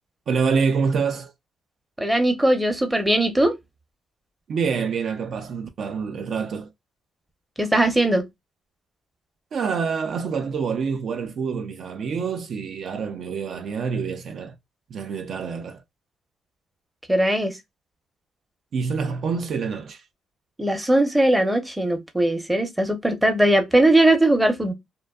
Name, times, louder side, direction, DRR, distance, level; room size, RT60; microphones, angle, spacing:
voice 1, 0.3-1.3 4.5-6.7 9.5-14.6 14.9-15.8 18.7-20.0, right 5 dB, 60° right, 0.3 m, -26 dB
voice 2, 2.0-3.6 7.6-8.3 17.1-17.6 20.6-24.7, right 1 dB, 10° right, 0.6 m, -19 dB
2.6 x 2.2 x 2.2 m
cardioid pair, 90°, 0 cm